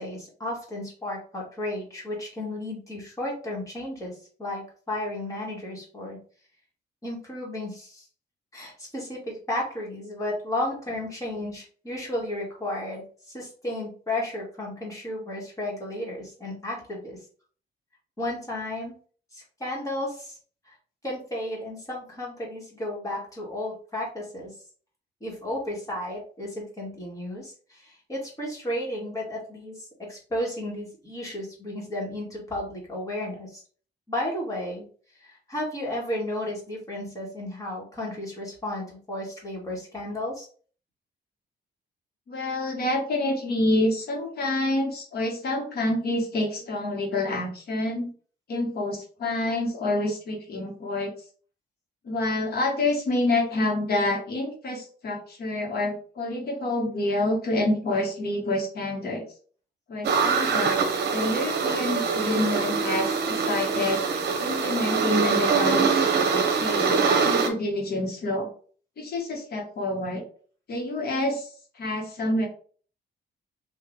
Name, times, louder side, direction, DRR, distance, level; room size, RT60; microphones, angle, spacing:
voice 1, 0.0-6.2 7.0-8.0 8.5-17.2 18.2-18.9 19.3-20.4 20.7-20.8 21.0-24.5 25.2-33.6 34.1-34.9 35.2-40.5, left 1 dB, 20° left, -3 dB, 1.8 m, -33 dB
voice 2, 42.3-48.1 48.5-51.1 52.0-59.2 59.9-60.8 61.1-68.5 69.0-70.2 70.7-71.5 71.8-72.5, left 2 dB, 60° left, 1 dB, 1.4 m, -27 dB
sound 1, 60.0-67.5, right 5 dB, 65° right, 0.8 m, -24 dB
3.8 x 2.7 x 3.6 m, 0.43 s
cardioid pair, 130°, 18 cm